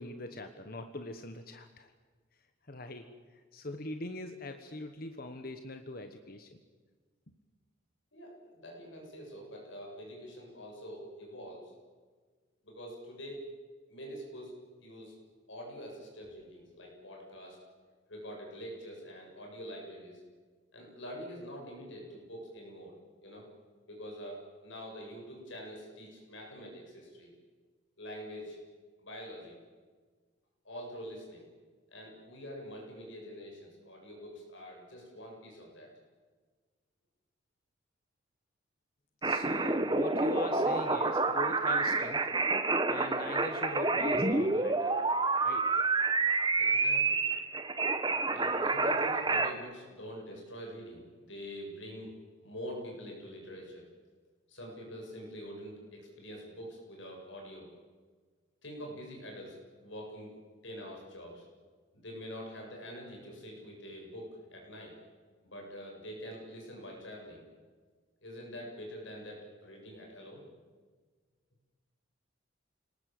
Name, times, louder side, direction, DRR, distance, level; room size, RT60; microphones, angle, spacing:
voice 1, 0.0-1.9 2.7-6.6 7.3-7.4 39.2-42.3 42.9-45.0 45.4-45.7, left 1 dB, 45° left, 7 dB, 1.3 m, -42 dB
voice 2, 8.1-11.7 12.6-13.5 13.9-14.5 14.8-15.2 15.5-17.6 18.1-20.2 20.7-23.5 23.9-27.3 28.0-28.6 29.0-29.6 30.6-31.5 31.9-35.9 46.6-47.2 48.3-52.1 52.4-53.9 54.5-57.7 58.6-59.6 59.8-60.3 60.6-61.4 61.9-64.9 65.4-67.4 68.2-70.4, equal, 70° left, -1 dB, 7.9 m, -45 dB
sound 1, 39.2-49.5, right 3 dB, 20° right, 1.2 m, -28 dB
29.0 x 19.5 x 7.9 m, 1.5 s
head